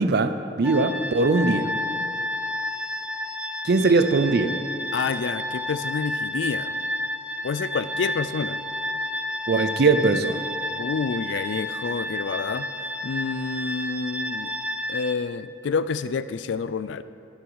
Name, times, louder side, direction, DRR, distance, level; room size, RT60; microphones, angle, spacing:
voice 1, 0.0-1.7 3.6-4.6 9.5-10.4, right 3 dB, 55° right, 10 dB, 0.5 m, -21 dB
sound 1, 0.6-15.2, left 1 dB, 5° right, 0.3 m, -31 dB
voice 2, 4.9-6.8 7.4-8.6 10.8-12.7 13.0-14.5 14.9-17.0, left 5 dB, 70° left, 14 dB, 0.4 m, -28 dB
11.5 x 9.9 x 4.7 m, 2.7 s
head